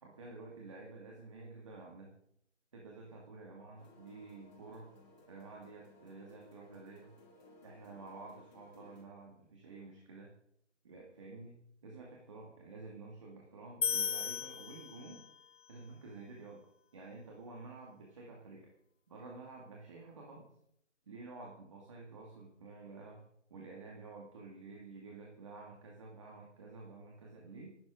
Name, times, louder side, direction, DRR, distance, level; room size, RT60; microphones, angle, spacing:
voice 1, 0.0-2.1 2.7-4.9 5.3-7.1 7.6-10.3 10.8-15.2 15.7-18.7 19.1-20.5 21.1-23.2 23.5-27.8, right 3 dB, 25° right, -2 dB, 2.3 m, -51 dB
sound 1, 3.8-9.0, left 2 dB, 35° left, 7.3 m, -60 dB
sound 2, 13.8-15.4, left 7 dB, 80° left, 0.8 m, -36 dB
26.0 x 12.5 x 3.8 m, 0.74 s
hypercardioid pair, 175°, 36 cm